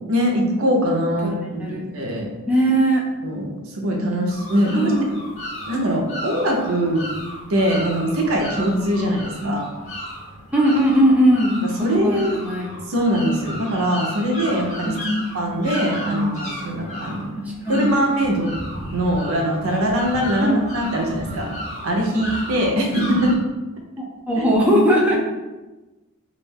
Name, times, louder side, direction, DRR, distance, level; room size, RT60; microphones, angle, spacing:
voice 1, 0.1-2.4 3.2-4.9 5.7-7.1 7.5-9.7 11.6-12.3 12.9-14.9 15.3-17.4 17.7-18.6 18.9-21.5 21.8-23.3 24.4-24.5, equal, 70° right, 1 dB, 0.6 m, -22 dB
voice 2, 2.5-3.0 4.7-5.1 9.4-9.6 10.5-11.6 11.9-12.7 14.9-15.6 16.0-16.6 17.4-17.9 20.4-20.6 24.0-25.2, right 1 dB, 5° right, -3 dB, 0.4 m, -20 dB
sound 1, 4.3-23.3, equal, 35° left, 0.7 m, -34 dB
2.4 x 2.2 x 3.4 m, 1.1 s
head